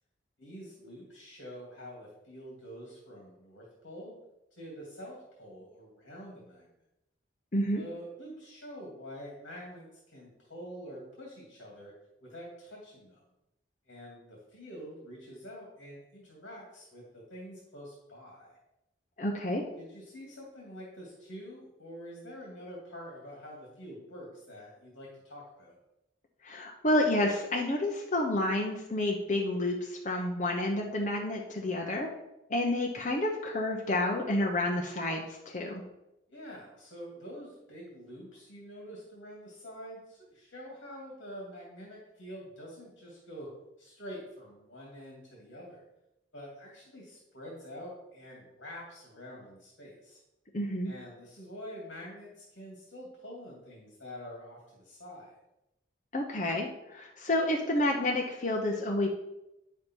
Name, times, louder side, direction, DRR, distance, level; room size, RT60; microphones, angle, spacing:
voice 1, 0.4-4.2 4.5-6.7 7.7-11.9 12.2-13.2 13.9-18.6 19.8-25.7 36.3-43.5 43.8-45.8 46.3-50.2 50.8-55.4, equal, 75° left, -3 dB, 2.5 m, -46 dB
voice 2, 7.5-7.8 19.2-19.6 26.4-32.1 32.5-35.8 50.5-50.9 56.1-59.1, left 1 dB, 40° left, 0 dB, 0.9 m, -29 dB
9.2 x 7.2 x 4.6 m, 0.90 s
head